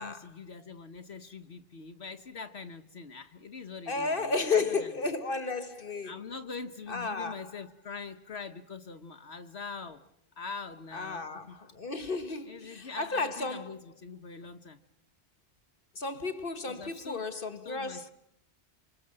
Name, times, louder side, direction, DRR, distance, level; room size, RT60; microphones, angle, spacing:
voice 1, 0.0-4.3 4.7-4.9 6.0-10.0 10.4-11.5 12.4-14.8 16.7-17.2 17.6-18.1, left 5 dB, 65° left, 1.5 m, -43 dB
voice 2, 3.9-6.2 6.9-7.5 10.9-13.8 15.9-18.1, left 4 dB, 50° left, 1.6 m, -33 dB
27.5 x 25.5 x 7.7 m
omnidirectional pair, 1.2 m